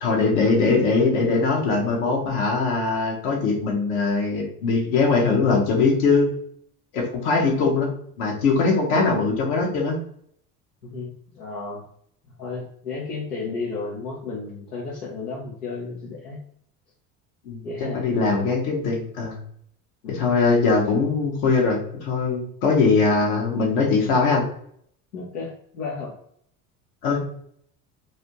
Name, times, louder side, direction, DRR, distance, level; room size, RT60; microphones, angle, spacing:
voice 1, 0.0-6.3 6.9-7.9 8.2-10.0 17.4-17.6 17.9-19.4 20.1-24.4 27.0-27.2, left 4 dB, 70° left, 0 dB, 1.2 m, -21 dB
voice 2, 10.8-11.8 12.4-16.4 17.6-18.1 18.3-18.5 20.0-20.7 25.1-26.1, left 4 dB, 90° left, -4 dB, 0.8 m, -33 dB
3.1 x 2.7 x 3.0 m, 0.65 s
hypercardioid pair, 70°, 46 cm